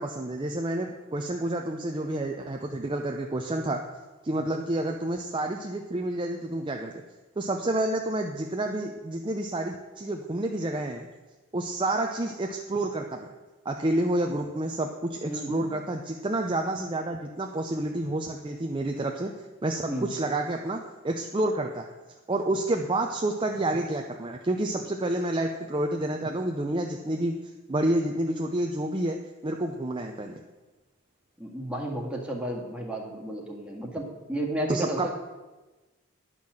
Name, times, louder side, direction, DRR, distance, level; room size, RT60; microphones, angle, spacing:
voice 1, 0.0-3.8 4.2-6.9 7.4-11.1 11.5-13.3 13.6-19.3 19.6-21.9 22.3-27.4 27.7-30.4 34.7-35.1, right 1 dB, 25° right, 2 dB, 0.6 m, -29 dB
voice 2, 15.3-15.7 19.9-20.1 31.4-35.1, right 1 dB, 5° right, -2 dB, 1.8 m, -32 dB
11.0 x 5.7 x 7.7 m, 1.2 s
head